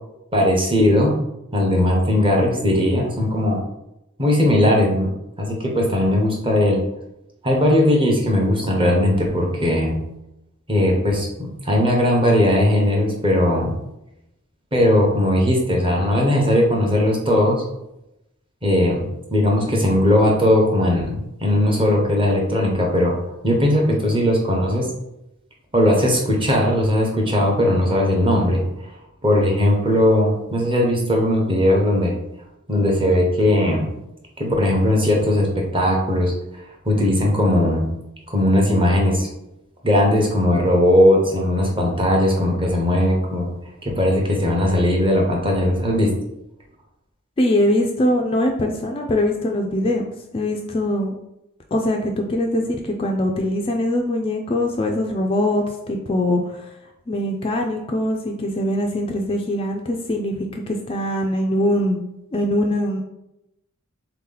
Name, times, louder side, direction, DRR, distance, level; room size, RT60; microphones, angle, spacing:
voice 1, 0.3-1.2 1.5-3.6 4.2-5.1 5.4-6.8 7.4-10.0 10.7-13.7 14.7-17.6 18.6-19.0 19.3-23.2 23.4-24.9 25.7-28.6 29.2-32.1 32.7-33.9 34.4-36.3 36.8-37.9 38.3-39.3 39.8-43.5 43.8-46.1, left 1 dB, 25° right, -1 dB, 0.8 m, -18 dB
voice 2, 47.4-50.0 50.3-51.2 51.7-56.7 57.1-62.0 62.3-63.0, left 1 dB, 25° left, 2 dB, 0.3 m, -22 dB
3.6 x 2.9 x 3.8 m, 0.87 s
head